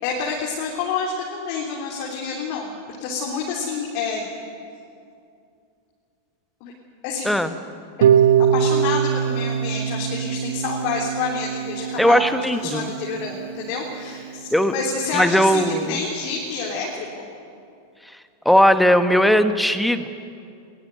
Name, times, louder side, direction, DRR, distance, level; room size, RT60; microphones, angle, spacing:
voice 1, 0.0-4.3 6.6-6.7 7.0-7.4 8.5-12.2 12.5-17.2, left 5 dB, 45° left, -2 dB, 3.5 m, -28 dB
Harp, 8.0-14.1, right 8 dB, 60° right, 1.0 m, -22 dB
voice 2, 12.0-12.9 14.5-14.7 15.1-16.0 18.4-20.1, equal, ahead, 10 dB, 1.4 m, -18 dB
21.0 x 19.0 x 9.3 m, 2.5 s
figure-of-eight pair, 90°, 0 cm